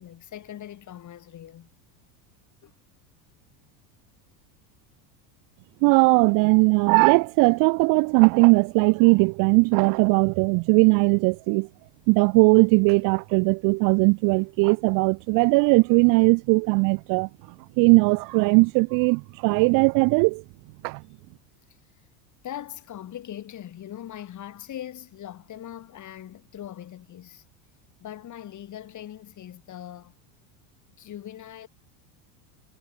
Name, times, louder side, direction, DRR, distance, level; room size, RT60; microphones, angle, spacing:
voice 1, 0.0-1.7 2.6-2.7 22.4-27.4 28.0-30.1 31.0-31.7, left 11 dB, 35° left, 6.2 m, -40 dB
voice 2, 5.8-11.7 12.1-17.3 17.8-20.4 20.8-21.0, right 30 dB, 45° right, 0.4 m, -19 dB
supercardioid pair, 130°, 50 cm